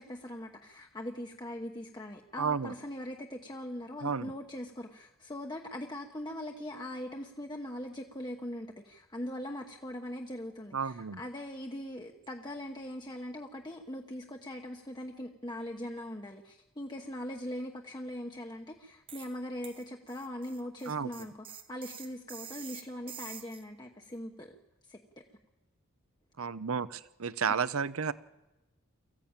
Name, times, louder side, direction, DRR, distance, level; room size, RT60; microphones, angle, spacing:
voice 1, 0.0-24.5 24.9-25.2, left 1 dB, 20° left, 2 dB, 1.0 m, -41 dB
voice 2, 2.4-2.7 4.0-4.3 10.7-11.2 20.9-21.1 26.4-28.1, right 6 dB, 75° right, 17 dB, 0.7 m, -32 dB
sound 1, 19.1-19.3 19.6-23.6, right 8 dB, 25° right, 0.8 m, -47 dB
23.5 x 15.0 x 8.9 m, 1.0 s
head